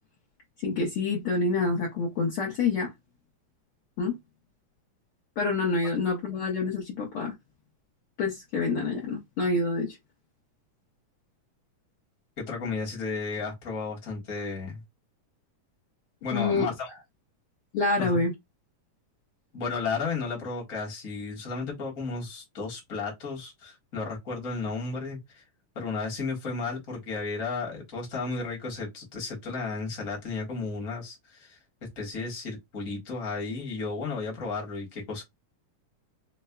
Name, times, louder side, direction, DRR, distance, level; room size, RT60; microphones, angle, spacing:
voice 1, 0.6-2.9 4.0-4.2 5.4-7.3 8.2-10.0 16.3-16.7 17.7-18.3, left 3 dB, 75° left, 1.2 m, -27 dB
voice 2, 12.4-14.8 16.2-16.9 18.0-18.2 19.5-25.4 25.7-31.6 31.9-35.2, left 4 dB, 40° left, 1.2 m, -33 dB
5.2 x 2.2 x 2.2 m
omnidirectional pair, 3.8 m